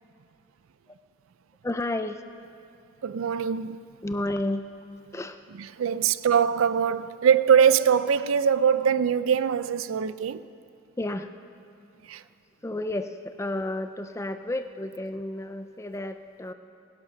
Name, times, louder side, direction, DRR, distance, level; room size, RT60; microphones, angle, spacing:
voice 1, 1.6-2.2 4.0-4.7 5.1-5.4 11.0-11.3 12.6-16.5, left 1 dB, 15° left, 0.4 m, -31 dB
voice 2, 3.0-3.8 5.8-10.5 12.1-12.2, right 7 dB, 90° right, 0.4 m, -22 dB
18.5 x 11.5 x 5.9 m
head